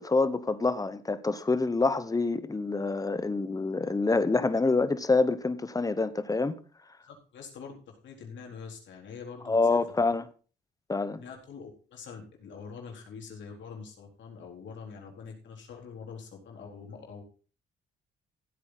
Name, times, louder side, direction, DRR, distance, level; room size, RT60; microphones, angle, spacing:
voice 1, 0.0-6.6 9.5-10.2 10.9-11.2, left 3 dB, 15° left, 1.1 m, -26 dB
voice 2, 7.0-9.8 11.1-17.2, left 5 dB, 70° left, 4.0 m, -45 dB
15.0 x 8.5 x 4.1 m
cardioid pair, 90°, 20 cm